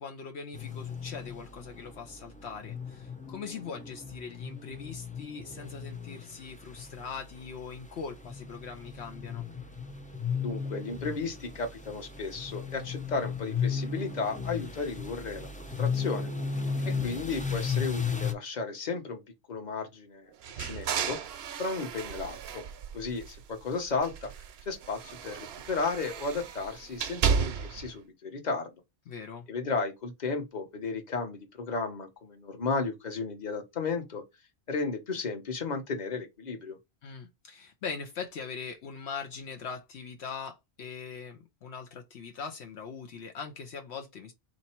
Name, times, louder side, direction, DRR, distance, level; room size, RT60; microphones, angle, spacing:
voice 1, 0.0-9.5 16.6-17.0 29.1-29.5 37.0-44.3, left 5 dB, 75° left, 1.0 m, -41 dB
sound 1, 0.5-18.3, left 6 dB, 10° left, 0.4 m, -36 dB
voice 2, 10.4-15.5 15.8-16.3 17.0-19.2 19.5-20.3 20.6-21.2 21.6-22.6 22.9-24.3 24.7-28.7 29.5-34.2 34.7-36.8, left 4 dB, 40° left, 1.1 m, -34 dB
sound 2, 20.4-23.6 24.0-27.9, right 6 dB, 70° right, 0.8 m, -33 dB
4.0 x 2.9 x 4.3 m
omnidirectional pair, 1.1 m